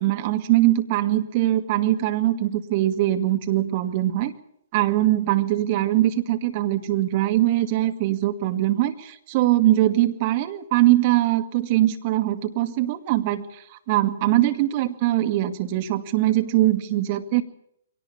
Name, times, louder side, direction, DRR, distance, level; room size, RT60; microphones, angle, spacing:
voice 1, 0.0-4.3 4.7-17.4, right 15 dB, 35° right, 6 dB, 2.3 m, -22 dB
23.0 x 18.5 x 7.4 m, 0.70 s
figure-of-eight pair, 125°, 0 cm